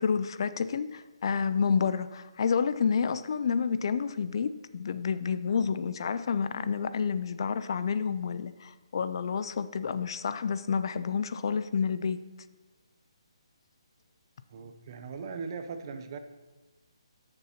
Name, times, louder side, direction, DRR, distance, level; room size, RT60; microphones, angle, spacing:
voice 1, 0.0-12.2, left 6 dB, 55° left, 13 dB, 0.4 m, -29 dB
voice 2, 14.5-16.2, right 5 dB, 40° right, 8 dB, 0.7 m, -39 dB
12.0 x 6.7 x 2.9 m, 1.2 s
hypercardioid pair, 150°, 3 cm